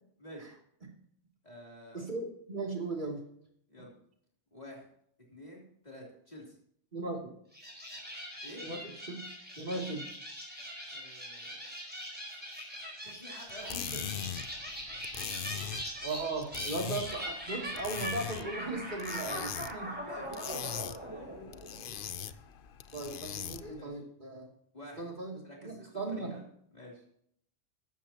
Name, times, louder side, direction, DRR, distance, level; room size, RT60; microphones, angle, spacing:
voice 1, 0.2-0.5 1.4-2.0 3.7-3.9 4.5-4.8 5.3-6.5 8.4-8.7 10.9-11.6 13.0-14.1 19.1-19.5 19.8-21.3 23.8-24.0 24.7-25.1 25.4-26.5 26.7-27.0, left 1 dB, 35° left, -3 dB, 3.4 m, -48 dB
voice 2, 1.9-3.2 6.9-7.3 8.6-9.2 9.6-10.1 16.0-19.4 19.7-19.9 22.9-24.5 25.0-26.3, right 2 dB, 40° right, 0 dB, 2.9 m, -37 dB
sound 1, 7.5-22.2, equal, 10° right, 4.6 m, -42 dB
sound 2, 13.5-23.8, left 9 dB, 55° left, 0.7 m, -41 dB
15.5 x 13.0 x 2.9 m, 0.68 s
omnidirectional pair, 1.2 m